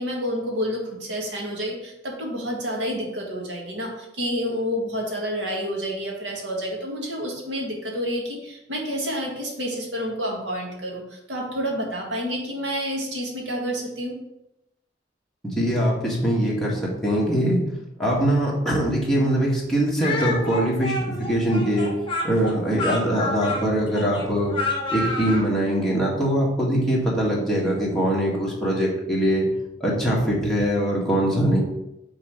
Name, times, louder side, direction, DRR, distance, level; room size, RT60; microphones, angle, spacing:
voice 1, 0.0-14.2, equal, 85° right, -1 dB, 1.8 m, -29 dB
voice 2, 15.4-17.6 18.0-21.9 22.2-24.6 24.9-29.5 29.8-31.6, right 1 dB, ahead, -6 dB, 1.9 m, -22 dB
Speech, 20.0-25.5, left 2 dB, 30° left, 1.2 m, -29 dB
5.9 x 3.9 x 5.8 m, 0.87 s
head